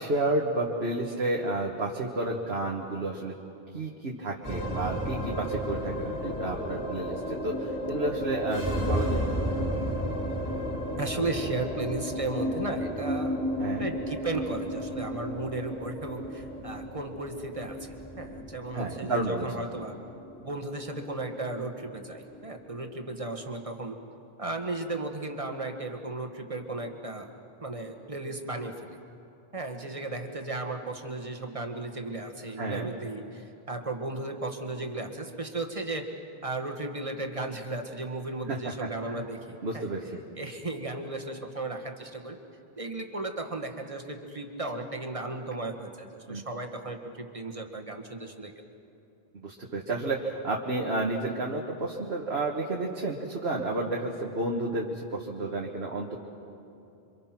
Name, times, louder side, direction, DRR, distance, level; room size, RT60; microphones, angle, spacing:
voice 1, 0.0-3.4 3.7-9.8 13.6-13.9 18.7-19.5 32.6-32.9 38.5-39.2 39.6-40.2 46.3-46.4 49.4-56.2, right 2 dB, 80° right, -1 dB, 1.8 m, -31 dB
sound 1, 4.4-22.9, equal, 15° left, 4.6 m, -33 dB
voice 2, 11.0-13.4 13.8-19.9 20.4-24.0 24.4-27.3 27.6-29.0 29.5-33.4 33.7-36.1 36.4-39.9 40.4-42.4 42.8-48.5, right 2 dB, 35° right, 4 dB, 1.7 m, -35 dB
27.5 x 25.0 x 6.0 m, 2.9 s
omnidirectional pair, 1.0 m